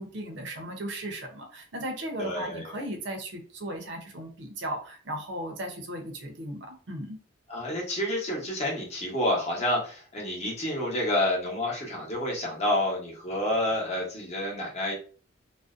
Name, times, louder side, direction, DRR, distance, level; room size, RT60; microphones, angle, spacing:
voice 1, 0.0-7.2, right 1 dB, 60° right, 2 dB, 0.6 m, -36 dB
voice 2, 2.2-2.7 7.5-14.9, left 1 dB, 35° left, -2 dB, 0.8 m, -29 dB
2.5 x 2.0 x 2.4 m, 0.39 s
head